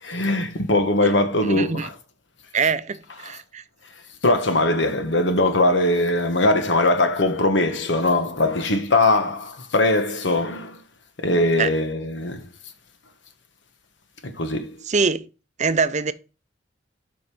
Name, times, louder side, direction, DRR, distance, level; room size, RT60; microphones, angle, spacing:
voice 1, 0.0-2.0 3.1-3.4 4.2-10.8 11.2-12.4 14.2-14.8, left 2 dB, 75° left, 1.4 m, -21 dB
voice 2, 1.5-1.9 2.5-3.6 11.6-11.7 14.9-15.3 15.6-16.1, right 5 dB, 40° right, 0.6 m, -23 dB
7.8 x 5.3 x 5.4 m
head